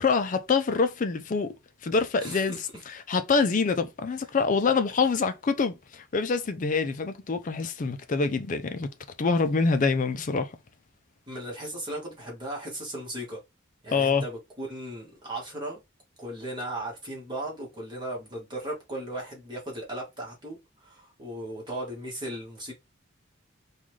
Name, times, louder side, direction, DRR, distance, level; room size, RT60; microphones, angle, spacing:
voice 1, 0.0-1.5 1.8-2.6 2.9-8.9 9.2-10.5 13.9-14.2, left 4 dB, 40° left, 0.4 m, -25 dB
voice 2, 2.2-2.6 11.3-13.4 13.8-15.8 16.2-22.7, right 1 dB, 20° right, 1.3 m, -37 dB
3.7 x 2.4 x 3.1 m
head